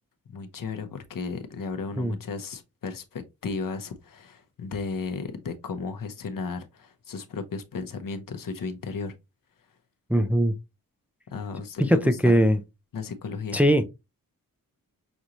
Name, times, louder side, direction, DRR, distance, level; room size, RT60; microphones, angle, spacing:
voice 1, 0.3-9.1 11.3-12.4 12.9-13.6, left 4 dB, 70° left, 0.9 m, -34 dB
voice 2, 10.1-10.5 11.9-12.6 13.5-13.8, equal, 5° right, 0.4 m, -20 dB
6.1 x 2.6 x 2.9 m
wide cardioid pair, 130°, 34 cm